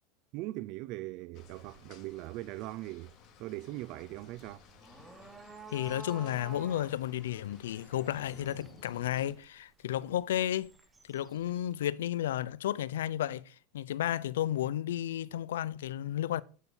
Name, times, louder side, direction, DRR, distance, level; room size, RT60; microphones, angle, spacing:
voice 1, 0.3-3.1 3.4-4.6, right 18 dB, 50° right, 0.4 m, -40 dB
sound 1, 1.3-9.3, left 6 dB, 50° left, 3.0 m, -57 dB
sound 2, 1.4-11.8, right 3 dB, 10° right, 1.5 m, -53 dB
voice 2, 5.7-10.7 11.1-16.4, left 12 dB, 90° left, 0.6 m, -33 dB
9.6 x 8.3 x 5.6 m
supercardioid pair, 135°, 0 cm